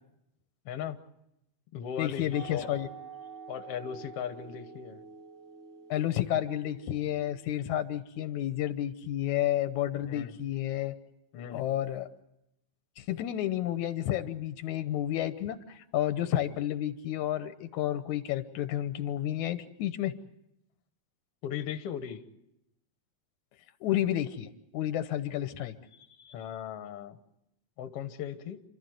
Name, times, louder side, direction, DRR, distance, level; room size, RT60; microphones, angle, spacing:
voice 1, 0.7-1.0 1.7-2.7 3.5-5.0 10.1-10.3 11.3-11.7 21.4-22.2 26.3-27.2 27.8-28.6, left 9 dB, 60° left, 9 dB, 2.0 m, -38 dB
voice 2, 2.0-2.9 5.9-10.9 11.5-12.1 13.0-20.1 23.8-25.7 26.2-26.3, left 12 dB, 90° left, 11 dB, 2.4 m, -31 dB
sound 1, 2.3-7.7, right 6 dB, 20° right, 5.7 m, -48 dB
29.0 x 13.5 x 9.3 m, 0.86 s
omnidirectional pair, 3.3 m